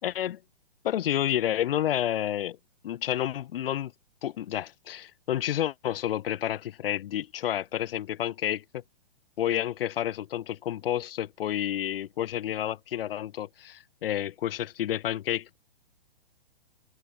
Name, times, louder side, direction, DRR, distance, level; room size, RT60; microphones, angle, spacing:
voice 1, 0.0-0.4 0.8-2.6 2.8-3.9 4.2-8.8 9.4-15.6, left 11 dB, 70° left, 0.5 m, -30 dB
hypercardioid pair, 125°, 30 cm